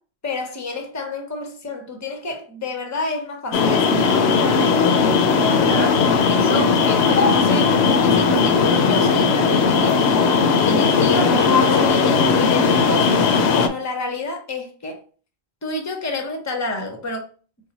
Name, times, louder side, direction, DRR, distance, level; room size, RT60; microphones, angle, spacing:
voice 1, 0.2-4.7 5.3-10.0 10.6-13.2 13.6-15.0 15.6-17.2, left 2 dB, 20° left, 0.6 m, -29 dB
sound 1, 3.5-13.7, left 5 dB, 75° left, 0.8 m, -17 dB
4.1 x 2.1 x 4.0 m
omnidirectional pair, 1.1 m